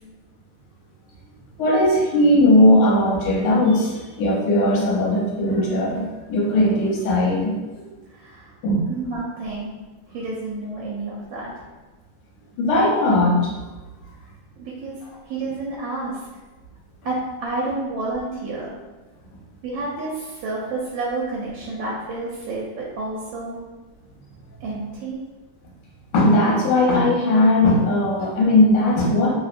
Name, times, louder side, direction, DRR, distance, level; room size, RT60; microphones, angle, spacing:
voice 1, 1.6-7.9 8.6-8.9 12.6-13.5 26.1-29.3, left 1 dB, 70° left, -4 dB, 1.3 m, -18 dB
voice 2, 8.1-8.5 8.9-9.7 10.1-11.5 14.6-15.0 15.2-16.2 17.0-18.7 19.6-23.6 24.6-25.2, right 2 dB, 85° right, -5 dB, 1.3 m, -29 dB
3.1 x 2.1 x 2.4 m, 1.2 s
omnidirectional pair, 2.0 m